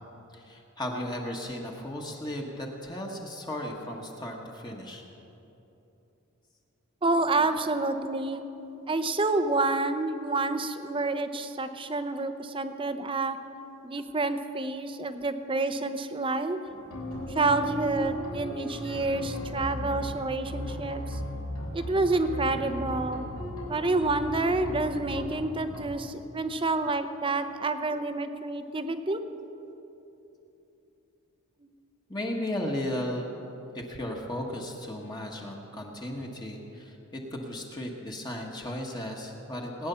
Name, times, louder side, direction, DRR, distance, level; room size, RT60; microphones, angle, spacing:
voice 1, 0.3-5.0 32.1-33.3 33.7-39.9, left 1 dB, 20° left, 0 dB, 1.3 m, -35 dB
voice 2, 7.0-8.4 8.9-13.4 13.8-16.6 17.3-21.2 21.7-23.2 23.6-29.2, right 2 dB, 25° right, 9 dB, 0.7 m, -28 dB
sound 1, 16.7-25.8, equal, 80° left, 4.0 m, -36 dB
19.0 x 9.7 x 6.9 m, 3.0 s
head